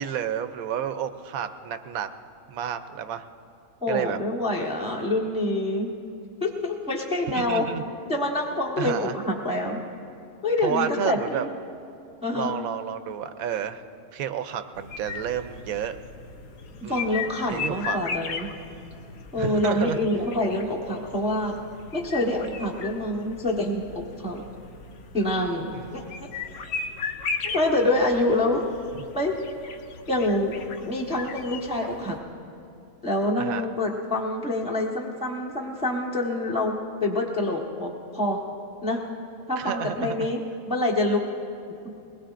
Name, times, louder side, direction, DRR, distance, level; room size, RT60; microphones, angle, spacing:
voice 1, 0.0-2.1 2.5-3.2 3.9-4.2 7.3-7.8 8.8-9.1 10.6-11.5 12.3-13.8 14.1-16.0 16.8-17.2 17.5-18.0 19.4-20.0 25.7-26.1 33.4-33.6 39.6-40.3, right 9 dB, 85° right, 10 dB, 1.1 m, -30 dB
voice 2, 3.8-5.9 6.4-7.6 8.1-9.8 10.4-11.5 12.2-12.5 16.9-18.5 19.3-21.6 21.9-24.4 25.1-26.3 27.4-28.6 29.1-29.3 30.1-32.2 33.0-36.7 37.0-38.4 38.8-39.0 39.5-40.4 40.6-41.2, left 1 dB, 5° right, -2 dB, 1.2 m, -26 dB
sound 1, 14.7-32.2, left 5 dB, 70° left, 1.2 m, -37 dB
22.0 x 20.5 x 2.5 m, 2.6 s
omnidirectional pair, 1.5 m